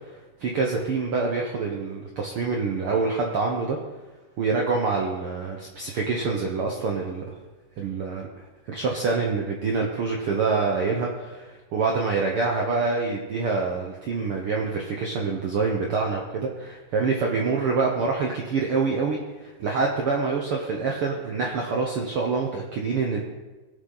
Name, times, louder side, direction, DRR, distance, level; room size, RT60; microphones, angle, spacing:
voice 1, 0.4-3.8 4.4-7.3 7.8-8.3 8.7-23.2, right 4 dB, 75° right, 0 dB, 1.2 m, -26 dB
18.0 x 7.0 x 3.9 m, 1.2 s
omnidirectional pair, 3.9 m